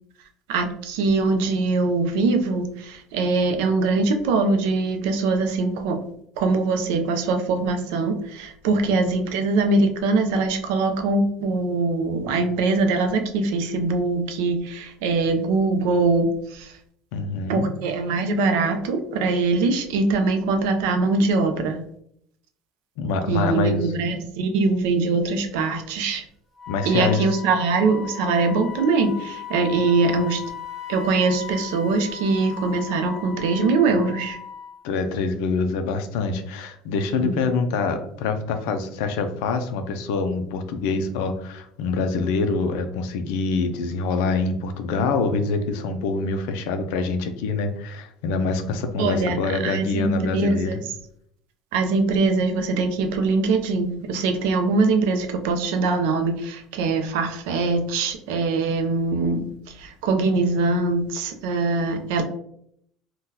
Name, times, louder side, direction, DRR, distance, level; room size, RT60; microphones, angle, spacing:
voice 1, 0.5-6.0 6.4-16.8 17.5-21.8 23.3-26.2 26.8-30.4 30.9-34.4 37.2-37.4 49.0-50.8 51.7-62.2, right 3 dB, 80° right, 6 dB, 0.5 m, -22 dB
voice 2, 17.1-17.7 23.0-23.9 26.7-27.3 34.8-50.7, left 4 dB, 75° left, 8 dB, 0.4 m, -25 dB
Wind instrument woodwind instrument, 26.6-34.8, left 8 dB, ahead, 0.5 m, -37 dB
3.7 x 2.2 x 2.7 m, 0.69 s
cardioid pair, 165°, 0 cm